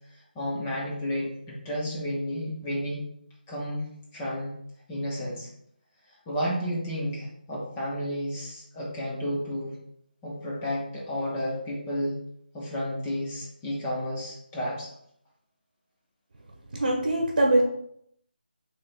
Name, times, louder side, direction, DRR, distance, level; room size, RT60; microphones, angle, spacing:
voice 1, 0.4-3.0 3.5-4.6 4.9-5.5 6.3-9.8 10.2-12.2 12.5-14.9, equal, 5° left, -5 dB, 0.3 m, -31 dB
voice 2, 16.7-17.6, right 1 dB, 60° right, -1 dB, 0.8 m, -22 dB
3.1 x 2.7 x 4.0 m, 0.71 s
figure-of-eight pair, 175°, 5 cm